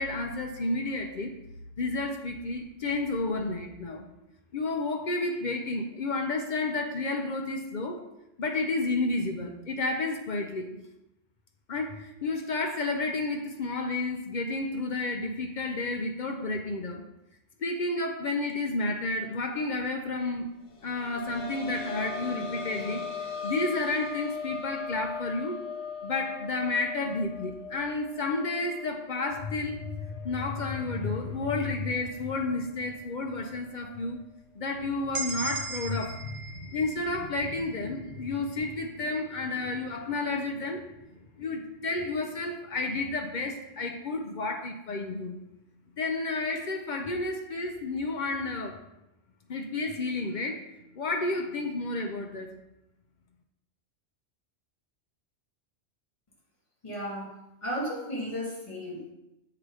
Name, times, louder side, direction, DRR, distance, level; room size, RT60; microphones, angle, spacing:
voice 1, 0.0-1.3 1.8-4.1 4.5-8.0 8.4-10.7 11.7-17.0 17.6-20.5 20.8-25.6 26.0-34.2 34.5-40.9 41.3-45.4 46.0-48.8 49.5-50.7 50.9-52.5, left 2 dB, 55° left, 4 dB, 0.6 m, -31 dB
sound 1, 20.7-32.2 32.5-32.6 34.2-34.3, left 5 dB, 70° left, 1.2 m, -39 dB
sound 2, 35.1-39.0, right 3 dB, 80° right, 1.0 m, -38 dB
voice 2, 56.8-59.1, equal, 25° left, -7 dB, 2.3 m, -34 dB
7.4 x 2.9 x 4.7 m, 0.90 s
omnidirectional pair, 1.2 m